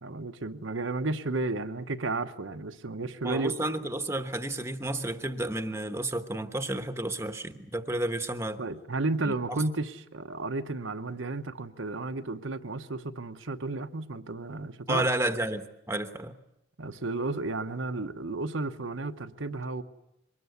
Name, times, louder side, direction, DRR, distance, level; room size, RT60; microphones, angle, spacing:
voice 1, 0.0-3.6 8.6-15.1 16.8-19.8, right 3 dB, 80° right, 7 dB, 1.0 m, -33 dB
voice 2, 3.2-8.6 9.2-9.6 14.9-16.3, right 1 dB, 15° right, 8 dB, 1.0 m, -31 dB
23.5 x 20.0 x 8.1 m, 0.88 s
head